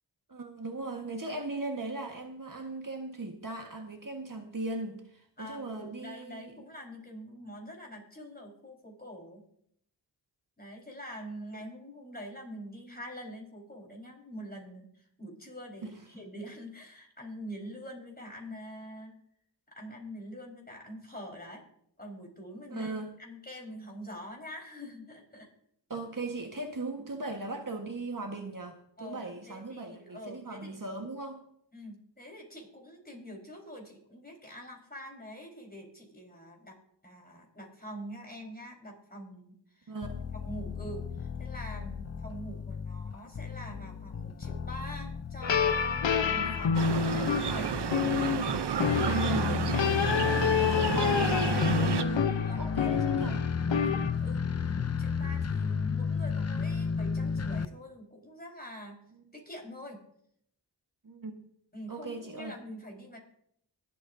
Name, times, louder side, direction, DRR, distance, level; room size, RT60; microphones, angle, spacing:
voice 1, 0.3-6.5 22.7-23.1 25.9-31.4 39.9-40.1 46.2-46.6 49.0-49.7 50.7-53.5 61.0-61.5 61.9-62.6, right 2 dB, 45° right, 3 dB, 1.6 m, -38 dB
voice 2, 5.4-9.4 10.6-19.1 19.7-21.6 22.0-25.5 27.0-27.1 29.0-30.8 31.7-39.9 40.4-46.0 46.3-47.7 48.1-48.4 50.5-51.3 52.1-52.7 53.7-59.0 59.3-60.0 61.7-63.2, equal, 20° left, 0 dB, 4.5 m, -45 dB
sound 1, 40.0-57.7, left 6 dB, 35° left, 0.6 m, -33 dB
sound 2, 45.4-54.1, left 7 dB, 90° left, 0.9 m, -29 dB
sound 3, 46.7-52.0, right 8 dB, 65° right, 0.8 m, -32 dB
24.0 x 8.4 x 2.7 m, 0.69 s
cardioid pair, 45°, 43 cm